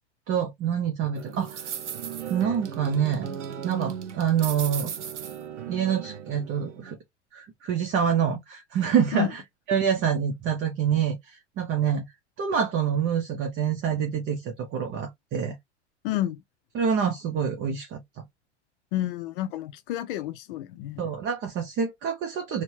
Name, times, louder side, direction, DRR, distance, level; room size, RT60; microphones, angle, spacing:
voice 1, 0.3-1.6 2.3-3.3 3.6-4.9 5.7-7.0 7.3-9.4 9.7-12.1 12.4-15.5 16.7-18.2 21.0-22.6, right 7 dB, 35° right, 0.8 m, -26 dB
sound 1, 1.2-7.0, right 8 dB, 80° right, 0.8 m, -36 dB
voice 2, 16.0-16.4 18.9-21.1, left 13 dB, 50° left, 0.6 m, -30 dB
4.3 x 2.2 x 2.8 m
figure-of-eight pair, 90°, 35 cm